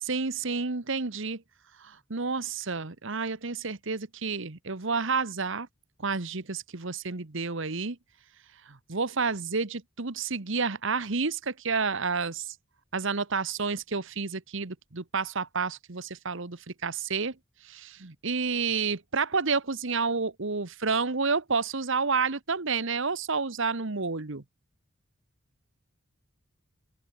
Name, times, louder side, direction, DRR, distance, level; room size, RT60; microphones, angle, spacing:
voice 1, 0.0-1.4 1.8-5.7 6.0-8.0 8.7-12.5 12.9-17.3 17.6-24.4, right 4 dB, 65° right, 1.4 m, -30 dB
open air
head